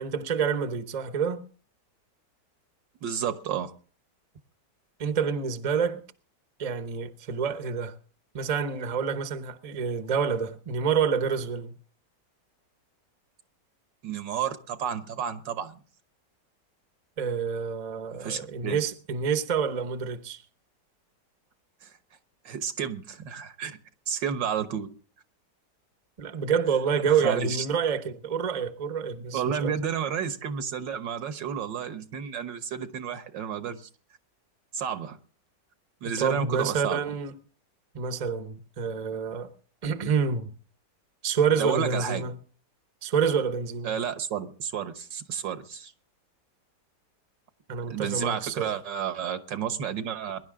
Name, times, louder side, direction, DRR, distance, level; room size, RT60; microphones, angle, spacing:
voice 1, 0.0-1.4 5.0-6.0 6.6-8.0 8.3-11.7 17.2-20.4 26.2-29.7 36.0-37.4 37.9-39.5 39.8-40.5 41.2-42.4 43.0-44.0 47.7-48.7, right 6 dB, 30° right, 0.7 m, -28 dB
voice 2, 3.0-3.7 14.0-15.8 18.2-18.8 21.8-21.9 22.5-23.8 24.1-24.9 27.1-27.7 29.3-33.9 34.7-35.2 36.0-37.0 41.6-42.3 43.8-45.9 47.9-50.4, right 8 dB, 85° right, 1.9 m, -31 dB
22.0 x 11.0 x 3.7 m
omnidirectional pair, 1.9 m